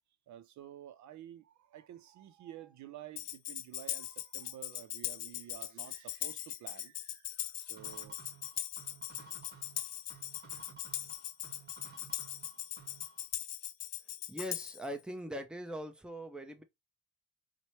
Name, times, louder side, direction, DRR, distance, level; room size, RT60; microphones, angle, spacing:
voice 1, 0.3-8.2, right 11 dB, 70° right, 0.5 m, -51 dB
Tambourine, 3.2-14.9, left 12 dB, 60° left, 0.5 m, -40 dB
sound 1, 7.8-13.3, right 3 dB, 35° right, 1.5 m, -55 dB
voice 2, 14.3-16.6, equal, 5° right, 0.6 m, -41 dB
4.3 x 2.2 x 3.0 m
cardioid pair, 90°, 30 cm